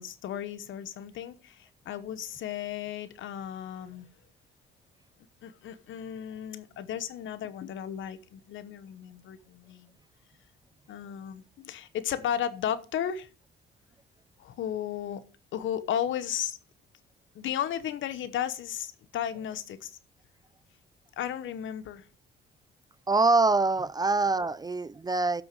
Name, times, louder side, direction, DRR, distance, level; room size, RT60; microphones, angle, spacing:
voice 1, 0.0-4.1 5.4-9.9 10.9-13.3 14.4-15.2 15.5-16.6 17.3-20.0 21.2-22.0, left 10 dB, 75° left, 1.0 m, -34 dB
voice 2, 23.1-25.4, right 3 dB, 20° right, 0.4 m, -24 dB
11.0 x 6.1 x 4.8 m
cardioid pair, 90°, 20 cm